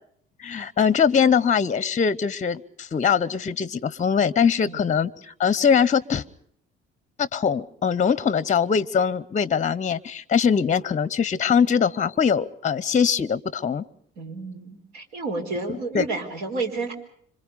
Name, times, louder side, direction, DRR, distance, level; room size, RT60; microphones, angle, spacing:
voice 1, 0.4-6.2 7.2-13.8 15.7-16.0, left 7 dB, 25° left, 20 dB, 0.8 m, -22 dB
voice 2, 14.2-16.9, right 3 dB, 65° right, 4 dB, 4.2 m, -30 dB
27.0 x 25.0 x 5.2 m, 0.65 s
figure-of-eight pair, 55°, 31 cm